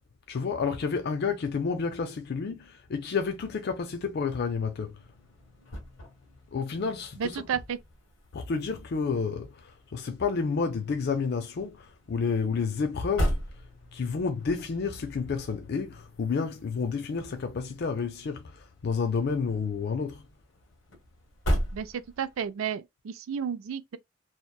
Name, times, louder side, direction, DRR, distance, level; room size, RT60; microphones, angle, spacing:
voice 1, 0.3-5.0 6.5-7.4 8.3-13.4 13.9-20.2, left 5 dB, 55° left, 0.4 m, -30 dB
sound 1, 4.4-22.5, equal, 75° left, 1.1 m, -38 dB
voice 2, 7.2-7.8 21.7-24.0, right 7 dB, 90° right, 0.4 m, -32 dB
2.8 x 2.1 x 2.2 m
head